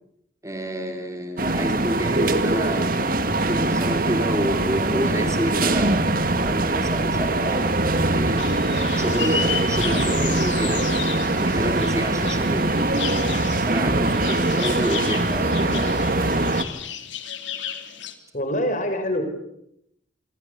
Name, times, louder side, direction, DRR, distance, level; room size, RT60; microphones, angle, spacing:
voice 1, 0.4-3.0 3.3-8.6 8.9-11.0 11.3-13.0 13.7-16.0, right 1 dB, 15° right, 5 dB, 3.2 m, -29 dB
sound 1, 1.4-16.6, right 2 dB, 50° right, 2.1 m, -22 dB
sound 2, 8.4-18.1, left 9 dB, 85° left, 3.4 m, -33 dB
voice 2, 18.3-19.2, left 1 dB, 45° left, 7 dB, 6.0 m, -24 dB
28.5 x 24.5 x 8.3 m, 0.79 s
head